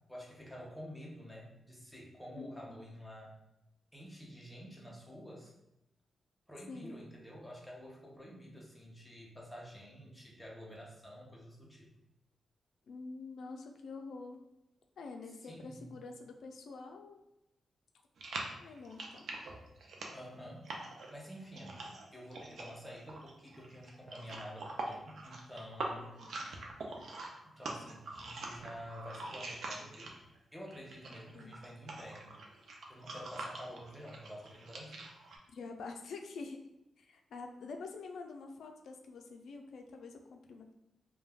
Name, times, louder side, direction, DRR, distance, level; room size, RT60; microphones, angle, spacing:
voice 1, 0.1-3.4 3.9-5.5 6.5-11.9 15.4-16.0 20.1-20.7 21.1-26.1 27.4-30.2 30.5-32.4 32.9-35.1, equal, 5° left, -4 dB, 0.6 m, -49 dB
voice 2, 2.3-2.8 6.7-7.1 12.9-14.4 15.0-17.2 18.6-19.3 26.1-26.3 27.0-27.1 31.3-31.5 35.5-36.6 37.0-40.7, left 4 dB, 80° left, 4 dB, 0.3 m, -47 dB
sound 1, 18.2-30.4 30.7-35.4, right 2 dB, 65° right, 0.4 m, -44 dB
2.3 x 2.2 x 3.3 m, 0.90 s
wide cardioid pair, 160°, 0 cm